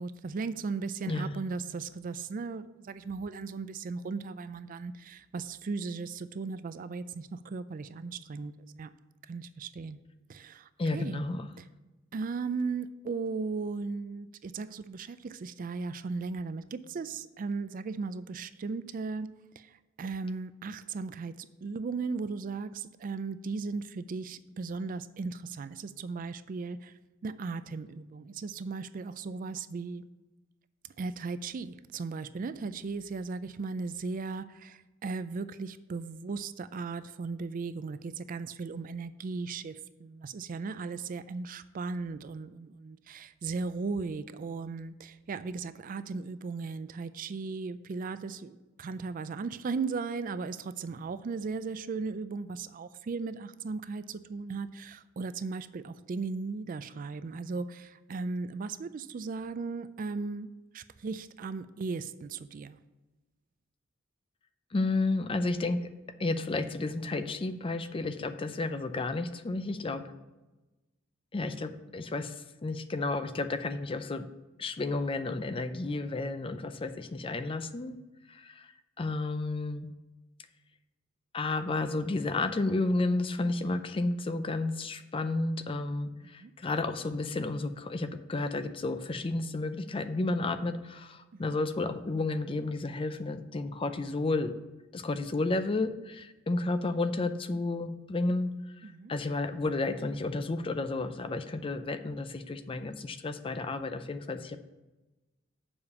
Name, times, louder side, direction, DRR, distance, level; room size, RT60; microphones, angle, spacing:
voice 1, 0.0-8.9 9.3-10.0 10.3-11.2 12.1-19.3 19.6-26.9 27.2-30.1 31.0-60.5 60.7-62.8 86.2-86.5 91.3-91.6 98.8-99.1, right 4 dB, 45° right, 13 dB, 0.4 m, -37 dB
voice 2, 10.8-11.5 64.7-65.8 66.2-70.0 71.3-72.3 72.6-74.3 74.6-78.0 78.3-78.7 79.0-79.9 81.3-94.5 94.9-98.5 98.8-104.6, left 2 dB, 25° left, 10 dB, 0.4 m, -32 dB
7.1 x 5.1 x 6.8 m, 1.1 s
head